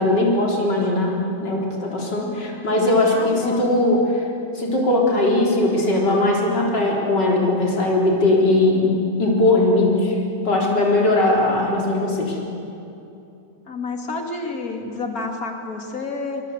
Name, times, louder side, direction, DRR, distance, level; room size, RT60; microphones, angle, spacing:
voice 1, 0.0-4.3 4.5-10.2 10.4-12.4, left 2 dB, 90° left, -2 dB, 4.6 m, -19 dB
voice 2, 3.1-3.9 13.7-16.4, left 3 dB, 55° left, 3 dB, 3.2 m, -30 dB
27.5 x 24.0 x 8.2 m, 2.7 s
omnidirectional pair, 1.8 m